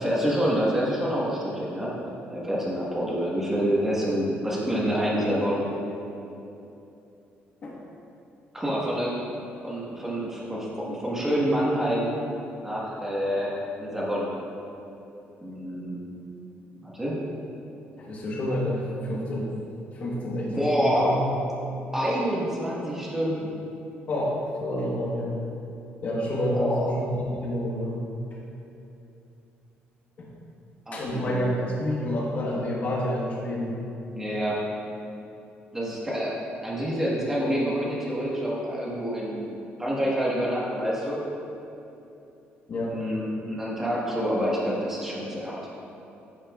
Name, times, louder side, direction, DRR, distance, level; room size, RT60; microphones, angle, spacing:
voice 1, 0.0-1.9 2.3-5.6 8.5-9.1 9.6-12.1 12.6-14.3 15.4-16.0 16.8-17.1 20.6-21.1 21.9-23.5 26.5-26.9 30.9-31.6 34.1-34.6 35.7-36.3 36.6-41.2 42.8-45.6, equal, 10° right, -6 dB, 1.4 m, -27 dB
voice 2, 18.0-19.5 19.9-21.2 24.1-25.4 26.0-28.0 30.2-30.3 30.9-33.8 42.7-43.0, equal, 40° left, -4 dB, 1.3 m, -29 dB
10.5 x 6.6 x 2.4 m, 2.8 s
cardioid pair, 155°, 4 cm